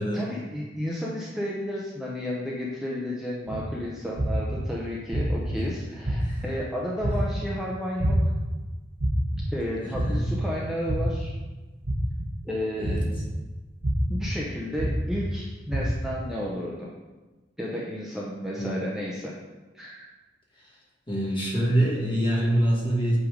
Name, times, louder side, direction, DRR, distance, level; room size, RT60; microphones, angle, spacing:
voice 1, 0.1-8.3 9.5-11.3 12.4-13.1 14.1-16.9 17.6-19.3 19.7-20.1, equal, 5° right, -5 dB, 0.7 m, -32 dB
sound 1, 3.5-3.6 4.2-4.6 5.1-5.6 6.0-6.5 7.0-7.4 8.0-8.4 9.0-9.4 9.9-10.4 10.9-11.3 11.8-12.3 12.8-13.2 13.8-14.2 14.8-15.2 15.7-16.1, right 1 dB, 50° right, 1.0 m, -27 dB
voice 2, 9.8-10.3 12.8-13.0 18.6-18.8 21.1-23.2, right 1 dB, 30° left, -3 dB, 1.4 m, -25 dB
7.9 x 3.4 x 5.0 m, 1.2 s
head